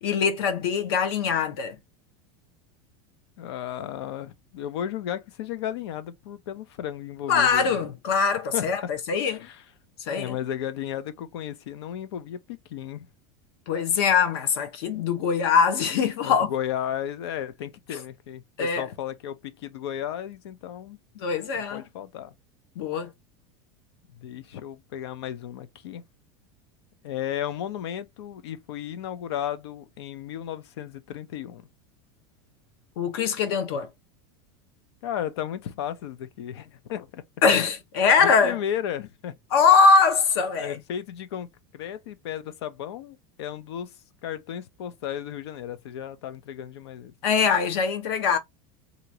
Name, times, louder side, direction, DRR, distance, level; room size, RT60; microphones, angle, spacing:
voice 1, 0.0-1.8 7.3-8.8 9.1-9.5 10.1-10.4 13.7-16.5 18.6-18.8 21.2-21.8 22.8-23.1 33.0-33.9 37.4-38.6 39.5-40.8 47.2-48.4, left 5 dB, 70° left, 1.0 m, -22 dB
voice 2, 3.4-7.8 8.5-8.9 9.3-9.7 10.1-13.1 16.2-21.0 21.6-22.3 24.1-26.0 27.0-31.7 35.0-37.2 38.2-39.3 40.6-41.5 41.7-43.9 44.2-47.1, left 10 dB, 85° left, 0.6 m, -34 dB
2.9 x 2.5 x 2.8 m
supercardioid pair, 155°, 13 cm